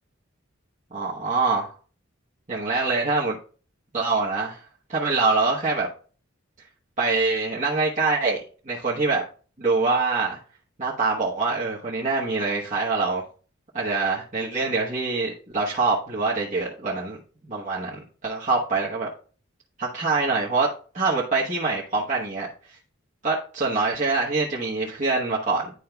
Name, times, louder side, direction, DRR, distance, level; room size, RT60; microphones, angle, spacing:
voice 1, 0.9-1.7 2.5-3.4 3.9-4.6 4.9-5.9 7.0-8.4 8.6-9.2 9.6-10.4 10.8-13.2 13.7-17.2 17.4-19.1 19.8-20.7 20.9-22.8 23.2-25.7, right 3 dB, 35° right, -6 dB, 1.1 m, -24 dB
11.0 x 4.6 x 2.3 m, 0.40 s
head